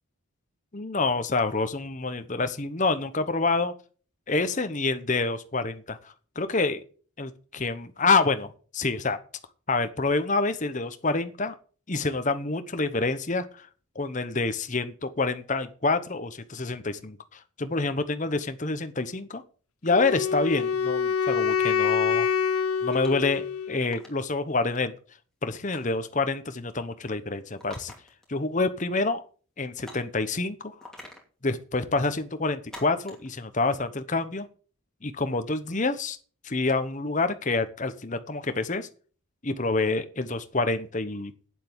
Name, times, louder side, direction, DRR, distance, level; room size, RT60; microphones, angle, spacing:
voice 1, 0.7-3.7 4.3-6.8 7.2-9.2 9.7-11.5 11.9-13.7 13.9-19.4 19.8-22.3 22.8-24.9 25.4-27.9 28.3-29.2 29.6-30.7 31.4-34.5 35.0-36.2 36.4-38.9 39.4-41.3, left 3 dB, 35° left, 10 dB, 1.0 m, -27 dB
Wind instrument woodwind instrument, 19.9-24.0, left 6 dB, 85° left, 0.8 m, -26 dB
sound 1, 22.9-23.3 23.8-24.2 25.7-26.0 27.6-28.3 28.6-28.7 29.8-30.2 30.8-31.3 32.7-33.3, left 1 dB, 5° left, 2.7 m, -46 dB
9.3 x 7.6 x 7.9 m, 0.41 s
head